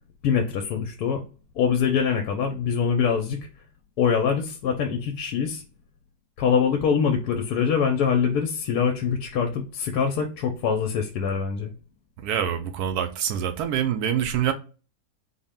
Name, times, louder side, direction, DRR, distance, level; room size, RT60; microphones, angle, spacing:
voice 1, 0.2-1.2 1.6-3.4 4.0-5.6 6.4-11.7, left 6 dB, 90° left, 1.1 m, -24 dB
voice 2, 12.2-14.5, right 9 dB, 85° right, 1.2 m, -25 dB
4.0 x 2.1 x 3.5 m
omnidirectional pair, 1.6 m